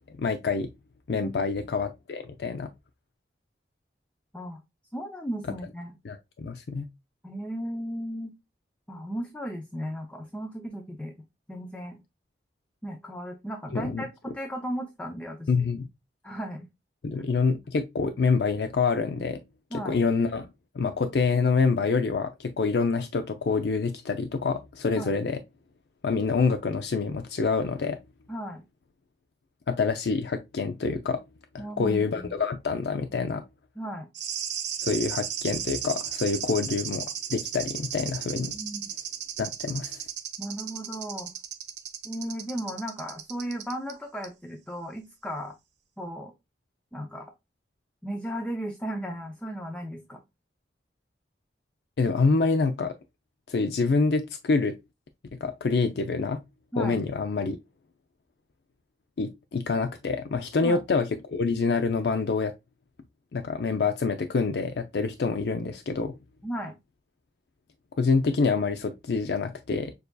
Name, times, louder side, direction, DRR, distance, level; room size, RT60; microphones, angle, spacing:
voice 1, 0.2-0.7 1.1-2.7 6.0-6.9 13.7-14.0 15.5-15.9 17.0-19.4 19.7-20.5 20.7-25.4 26.0-28.0 29.7-31.2 31.5-33.4 34.8-38.6 39.4-40.0 52.0-52.9 53.5-54.8 55.4-56.4 56.8-57.6 59.2-62.5 63.3-66.2 68.0-69.9, left 4 dB, 70° left, 0.4 m, -26 dB
voice 2, 1.2-1.7 4.3-4.6 4.9-5.9 7.2-8.4 8.9-11.1 11.5-12.0 12.8-15.7 16.2-16.7 19.7-20.0 24.9-25.1 28.3-28.6 31.6-32.3 33.8-34.1 38.5-38.8 40.4-41.3 42.0-45.5 46.0-46.3 46.9-47.3 48.0-50.2 56.7-57.0 60.6-60.8 66.4-66.8, equal, 5° left, 0.5 m, -35 dB
sound 1, 34.1-43.9 44.2-44.3, right 9 dB, 85° right, 0.9 m, -35 dB
6.6 x 2.7 x 2.2 m
head